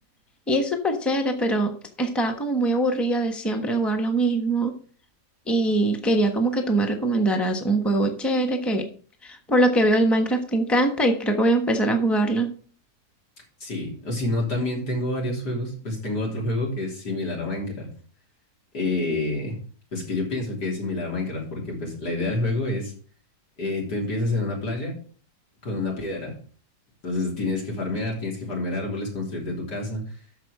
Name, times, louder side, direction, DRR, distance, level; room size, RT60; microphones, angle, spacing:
voice 1, 0.5-1.7 2.0-4.8 5.5-8.9 9.2-12.5, right 1 dB, ahead, 4 dB, 1.0 m, -22 dB
voice 2, 13.6-17.9 18.7-19.6 19.9-22.9 23.6-24.9 25.6-26.4 27.0-30.0, left 2 dB, 90° left, -2 dB, 4.0 m, -28 dB
13.0 x 4.8 x 4.9 m, 0.43 s
omnidirectional pair, 1.7 m